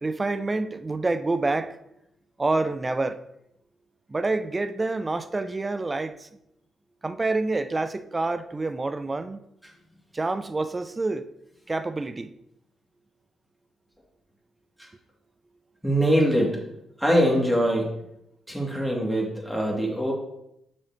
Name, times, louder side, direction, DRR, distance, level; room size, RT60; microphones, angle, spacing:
voice 1, 0.0-1.8 2.4-3.2 4.1-6.3 7.0-9.4 10.1-11.2 11.7-12.3, right 3 dB, 30° right, 0.5 m, -27 dB
voice 2, 15.8-16.6 17.0-17.9 18.5-20.1, equal, ahead, 2.5 m, -23 dB
6.4 x 6.2 x 3.0 m
hypercardioid pair, 40°, 0 cm